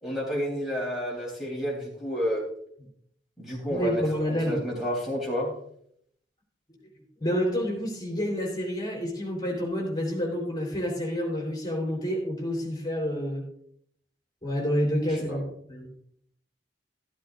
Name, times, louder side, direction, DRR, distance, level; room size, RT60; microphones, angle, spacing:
voice 1, 0.0-2.4 3.4-4.0 4.3-5.5 15.1-15.4, equal, ahead, -5 dB, 3.5 m, -30 dB
voice 2, 3.7-4.6 7.2-13.4 14.4-15.9, equal, 20° left, -1 dB, 3.8 m, -28 dB
14.0 x 13.5 x 2.6 m, 0.66 s
head